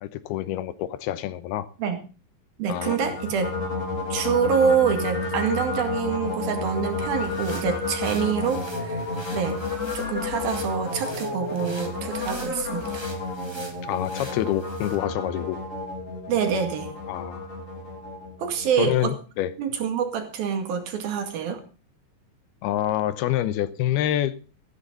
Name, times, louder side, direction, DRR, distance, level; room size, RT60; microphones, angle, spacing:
voice 1, 0.0-1.7 2.7-3.0 13.8-15.6 17.1-17.5 18.8-19.5 22.6-24.3, left 12 dB, 85° left, 2.8 m, -27 dB
voice 2, 2.6-3.5 4.1-9.1 9.3-9.6 9.9-13.0 16.3-16.9 18.4-19.1 19.6-21.6, right 7 dB, 70° right, 4.0 m, -26 dB
sound 1, 2.7-19.0, left 3 dB, 20° left, 3.6 m, -31 dB
sound 2, 6.8-15.0, right 1 dB, 15° right, 0.9 m, -45 dB
15.0 x 14.0 x 3.9 m
omnidirectional pair, 4.5 m